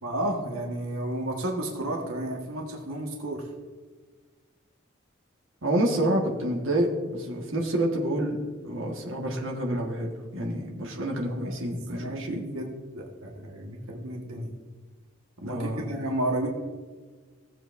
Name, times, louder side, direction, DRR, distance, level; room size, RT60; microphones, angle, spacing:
voice 1, 0.0-3.5 10.9-11.5 11.9-14.5 15.4-16.5, right 1 dB, 85° right, 0 dB, 1.5 m, -32 dB
voice 2, 5.6-8.4 8.6-12.5 15.4-15.9, right 1 dB, 65° right, -1 dB, 1.6 m, -28 dB
16.5 x 7.7 x 2.6 m, 1.4 s
head